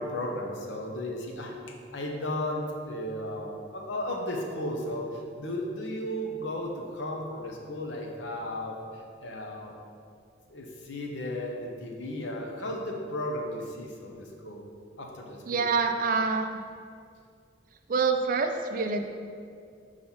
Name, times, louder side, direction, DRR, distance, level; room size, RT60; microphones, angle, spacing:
voice 1, 0.0-9.8 10.5-14.6 15.0-15.7, left 1 dB, 80° left, 1 dB, 0.8 m, -35 dB
voice 2, 15.5-16.6 17.9-19.1, right 4 dB, 45° right, 6 dB, 0.4 m, -26 dB
5.7 x 3.2 x 5.6 m, 2.3 s
head